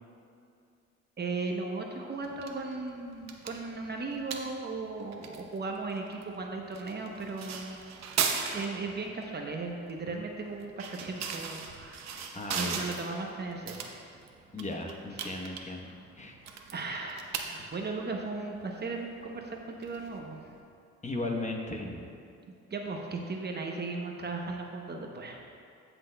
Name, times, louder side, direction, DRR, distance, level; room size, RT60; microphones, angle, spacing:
voice 1, 1.2-7.8 8.5-12.1 12.5-13.9 15.2-15.3 16.7-20.4 22.7-25.4, right 3 dB, 35° right, 1 dB, 0.8 m, -37 dB
sound 1, 2.2-20.6, right 6 dB, 60° right, 0.8 m, -39 dB
voice 2, 12.3-13.0 14.5-16.4 21.0-22.0, left 2 dB, 25° left, 2 dB, 0.9 m, -36 dB
15.5 x 6.0 x 2.2 m, 2.4 s
cardioid pair, 90°, 30 cm